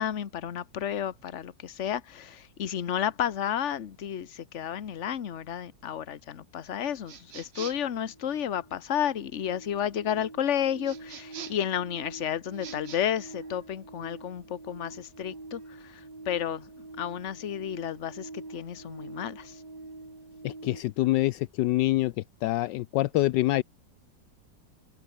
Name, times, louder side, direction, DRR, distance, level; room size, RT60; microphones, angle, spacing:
voice 1, 0.0-16.7 17.0-19.6, left 9 dB, 45° left, 1.3 m, -32 dB
sound 1, 7.1-7.9 10.8-11.7 12.5-13.0, right 8 dB, 45° right, 0.9 m, -44 dB
sound 2, 7.2-7.3 7.6-20.8, right 2 dB, 65° right, 6.5 m, -46 dB
voice 2, 20.4-22.1 22.4-23.6, left 16 dB, 75° left, 1.2 m, -25 dB
omnidirectional pair, 2.0 m